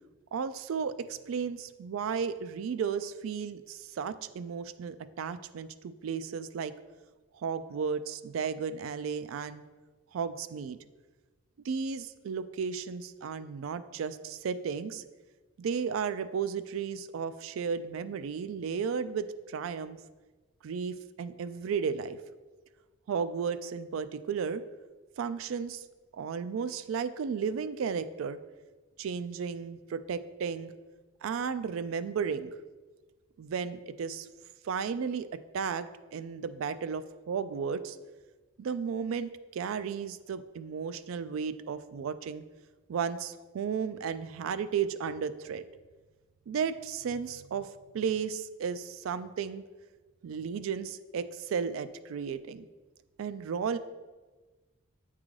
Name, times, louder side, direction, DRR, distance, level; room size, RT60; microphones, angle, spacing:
voice 1, 0.3-6.7 7.3-9.6 10.1-10.8 11.6-15.0 15.6-20.0 20.6-22.2 23.1-24.6 25.2-25.8 26.1-28.4 29.0-30.7 31.2-32.5 33.4-34.3 34.6-35.3 35.5-38.0 38.6-42.4 42.9-45.6 46.5-49.6 50.2-52.7 53.2-53.8, right 6 dB, 80° right, 13 dB, 0.3 m, -34 dB
8.3 x 3.8 x 3.1 m, 1.3 s
head